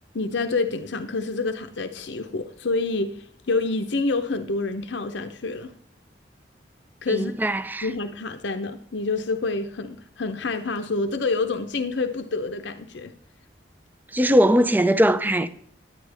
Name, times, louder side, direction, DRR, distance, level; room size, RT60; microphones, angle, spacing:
voice 1, 0.1-5.7 7.0-7.3 7.8-13.1, left 3 dB, 80° left, 0.7 m, -27 dB
voice 2, 7.1-7.9 14.1-15.5, equal, 10° right, 0.4 m, -20 dB
9.8 x 9.6 x 3.4 m
head